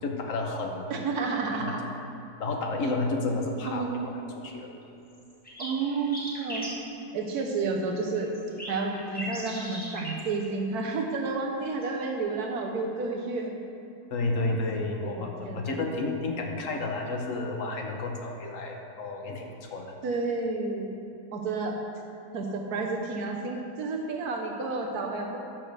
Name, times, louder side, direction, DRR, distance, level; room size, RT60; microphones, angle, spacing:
voice 1, 0.0-0.9 1.6-1.7 2.4-3.8 4.4-4.7 14.1-19.9, left 2 dB, 60° left, 2 dB, 1.1 m, -31 dB
voice 2, 0.9-1.8 3.6-4.1 5.6-6.6 7.1-8.3 8.7-13.5 14.4-15.8 20.0-20.9 21.3-21.8 22.3-25.4, right 3 dB, 70° right, 2 dB, 1.4 m, -31 dB
sound 1, 4.8-4.9 5.1-6.7 8.0-10.2 11.7-12.1, equal, 5° left, 1.4 m, -39 dB
11.5 x 6.2 x 3.3 m, 2.8 s
omnidirectional pair, 1.7 m